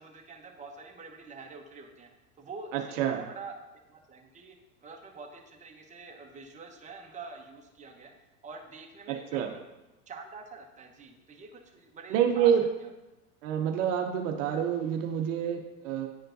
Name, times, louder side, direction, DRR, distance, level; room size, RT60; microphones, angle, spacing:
voice 1, 0.0-2.1 2.4-3.5 3.9-4.5 4.8-8.1 8.4-9.6 10.1-12.5, right 4 dB, 15° right, 1 dB, 1.0 m, -46 dB
voice 2, 2.7-3.2 9.1-9.5 12.1-12.6 13.4-16.1, right 8 dB, 60° right, 4 dB, 0.8 m, -27 dB
10.0 x 4.4 x 2.6 m, 1.0 s
hypercardioid pair, 95°, 44 cm